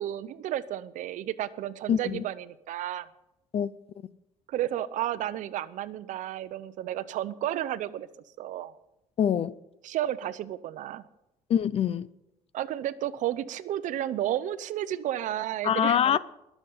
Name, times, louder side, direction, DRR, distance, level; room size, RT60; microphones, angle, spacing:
voice 1, 0.0-3.1 4.5-8.1 8.4-8.7 9.8-11.1 12.5-16.0, right 12 dB, 70° right, 0.7 m, -32 dB
voice 2, 1.9-2.2 3.5-3.7 9.2-9.5 11.5-12.1 15.6-16.2, left 9 dB, 45° left, 0.6 m, -24 dB
21.0 x 7.2 x 5.5 m
cardioid pair, 100°, 14 cm